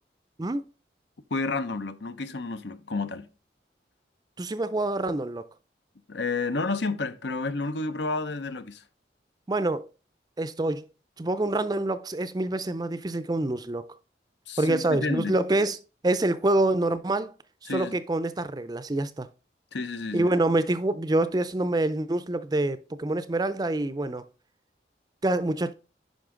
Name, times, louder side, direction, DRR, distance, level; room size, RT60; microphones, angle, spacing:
voice 1, 1.3-3.3 6.1-8.8 14.5-15.3 17.7-17.9 19.7-20.3, left 3 dB, 80° left, 0.7 m, -30 dB
voice 2, 4.4-5.5 9.5-9.9 10.4-10.9 11.2-13.9 14.6-15.8 16.0-17.3 17.7-19.3 20.1-24.3 25.2-25.7, right 2 dB, 20° right, 0.4 m, -26 dB
10.5 x 5.3 x 3.7 m
head